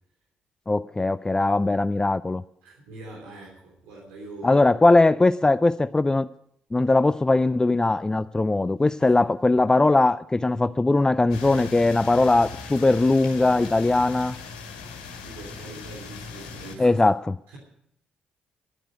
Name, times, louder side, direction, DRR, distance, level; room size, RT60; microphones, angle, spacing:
voice 1, 0.7-2.4 4.4-6.3 6.7-14.4 16.8-17.4, left 2 dB, 20° left, 0.4 m, -20 dB
voice 2, 2.6-4.7 9.0-9.2 15.2-17.0 17.5-17.6, right 2 dB, 80° right, 3.3 m, -43 dB
sound 1, 11.3-16.8, left 5 dB, 90° left, 1.9 m, -39 dB
11.5 x 9.1 x 7.9 m
hypercardioid pair, 45°, 4 cm